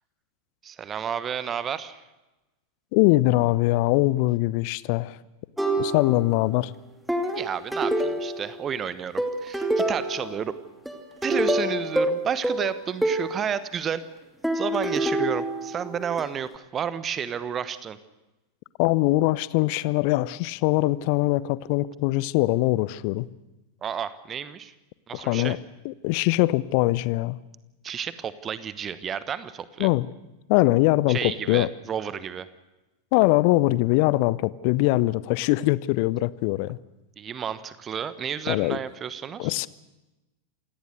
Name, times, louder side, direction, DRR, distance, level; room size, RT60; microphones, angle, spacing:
voice 1, 0.6-2.0 7.3-10.6 11.2-14.0 14.5-18.0 23.8-24.7 25.1-25.6 27.8-29.9 31.1-32.5 37.2-39.5, right 8 dB, 25° right, 15 dB, 1.1 m, -31 dB
voice 2, 2.9-5.2 5.8-6.7 18.8-23.3 25.1-25.6 25.8-27.4 29.8-30.1 30.5-31.7 33.1-36.8 38.5-38.8 39.4-39.7, left 19 dB, 45° left, 20 dB, 0.7 m, -22 dB
sound 1, 5.6-6.4 7.1-8.7 9.2-10.4 10.9-13.4 14.4-16.2, right 1 dB, ahead, 2.7 m, -26 dB
27.5 x 18.0 x 6.5 m, 1.0 s
figure-of-eight pair, 90°, 0 cm